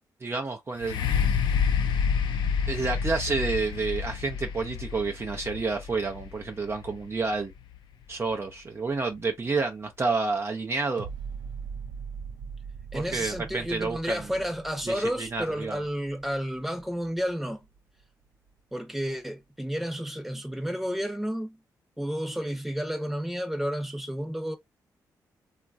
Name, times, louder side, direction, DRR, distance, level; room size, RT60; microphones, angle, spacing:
voice 1, 0.2-1.1 2.7-7.5 8.1-11.1 12.9-14.2 14.9-15.8, right 4 dB, 35° right, 0.6 m, -29 dB
sound 1, 0.8-8.5 9.2-9.3, left 6 dB, 80° left, 0.4 m, -29 dB
sound 2, 11.0-18.0 18.5-18.6, right 6 dB, 75° right, 0.6 m, -41 dB
voice 2, 12.9-17.6 18.7-21.6 22.0-24.6, equal, 5° right, 0.9 m, -31 dB
3.0 x 2.4 x 2.5 m
cardioid pair, 65°, 8 cm